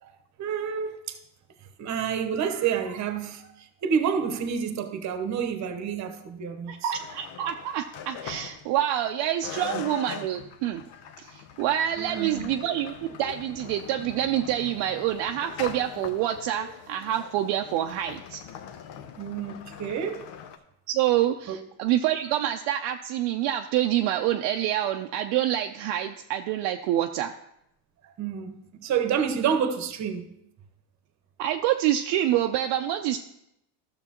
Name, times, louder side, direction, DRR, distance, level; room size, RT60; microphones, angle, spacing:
voice 1, 0.0-1.2 1.8-6.9 9.7-9.8 12.0-12.5 19.2-20.3 21.5-21.6 28.0-30.3, right 7 dB, 40° right, 1.0 m, -29 dB
voice 2, 6.7-10.8 11.2-18.4 20.9-27.3 31.4-33.2, right 12 dB, 65° right, 0.6 m, -27 dB
sound 1, 6.9-9.1 9.4-20.6, left 8 dB, 60° left, 0.9 m, -42 dB
12.5 x 6.8 x 2.9 m
supercardioid pair, 105°, 45 cm